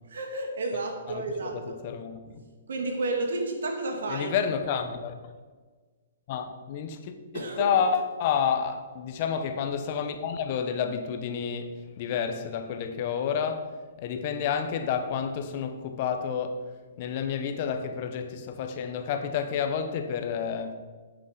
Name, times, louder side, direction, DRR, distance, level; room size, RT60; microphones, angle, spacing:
voice 1, 0.0-1.8 2.7-4.3 7.3-7.7, right 2 dB, 70° right, 2.3 m, -31 dB
voice 2, 1.1-2.4 4.1-5.3 6.3-13.7 14.0-16.6 17.0-20.8, left 7 dB, 45° left, 1.1 m, -30 dB
9.5 x 8.5 x 5.1 m
hypercardioid pair, 125°, 0 cm